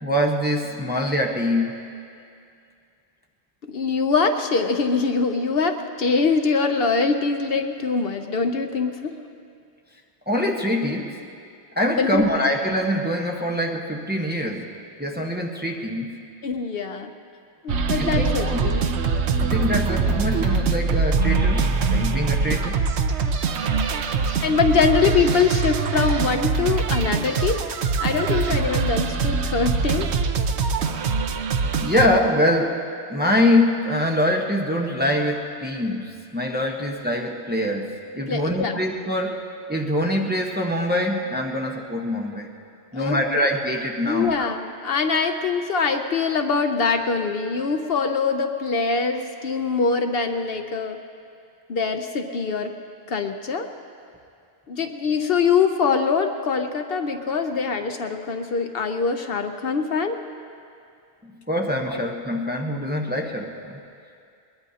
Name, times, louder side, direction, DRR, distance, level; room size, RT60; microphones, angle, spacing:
voice 1, 0.0-1.9 10.3-11.1 11.7-14.7 15.0-16.2 18.0-18.8 19.4-22.8 31.8-32.8 33.1-39.4 39.7-42.5 42.9-44.3 61.2-63.8, left 1 dB, 10° right, 0 dB, 0.9 m, -24 dB
voice 2, 3.6-9.2 12.0-12.3 16.4-17.1 17.6-18.8 24.4-27.6 28.0-30.1 38.3-38.8 42.9-43.5 44.0-51.0 51.7-52.7 53.1-53.7 54.7-60.2 61.9-62.0, left 5 dB, 60° left, 6 dB, 0.9 m, -23 dB
sound 1, 17.7-32.1, right 4 dB, 80° right, 1.0 m, -23 dB
21.5 x 20.5 x 2.8 m, 2.4 s
omnidirectional pair, 1.1 m